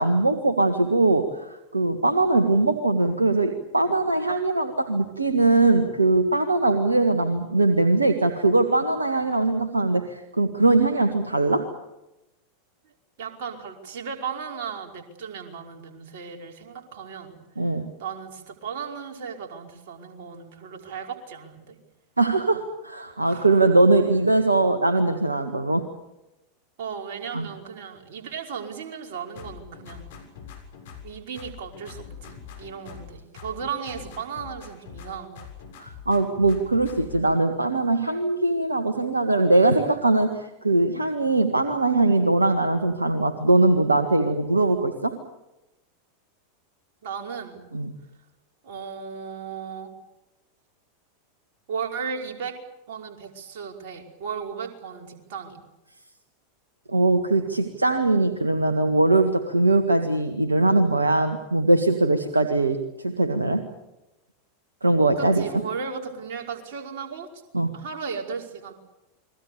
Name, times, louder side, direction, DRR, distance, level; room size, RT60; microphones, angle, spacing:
voice 1, 0.0-11.7 17.6-17.9 22.2-25.8 27.3-27.5 35.8-45.2 47.7-47.9 56.9-63.7 64.8-65.4 67.5-67.7, right 2 dB, 80° right, 8 dB, 1.7 m, -21 dB
voice 2, 13.2-17.7 18.0-21.8 23.2-23.7 26.8-30.1 31.0-35.5 47.0-47.6 48.6-49.9 51.7-52.6 52.9-55.6 65.2-67.3 67.7-68.7, right 6 dB, 55° right, 2 dB, 5.2 m, -35 dB
sound 1, 29.4-31.1 31.4-33.1 33.4-35.1 35.4-37.2, left 7 dB, 55° left, 6.9 m, -42 dB
30.0 x 22.5 x 7.0 m, 0.94 s
figure-of-eight pair, 85°, 0 cm